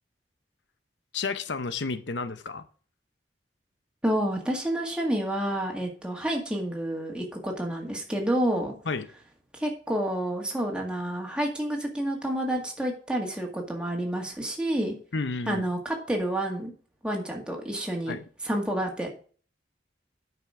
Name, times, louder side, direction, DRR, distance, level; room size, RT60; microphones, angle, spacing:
voice 1, 1.1-2.6 8.8-9.1 15.1-15.6 18.1-18.2, left 4 dB, 85° left, 11 dB, 0.8 m, -31 dB
voice 2, 4.0-8.7 9.6-14.9 15.5-16.7 17.0-18.1 18.4-19.1, right 1 dB, 5° right, 0 dB, 1.9 m, -29 dB
9.3 x 6.0 x 4.9 m, 0.41 s
head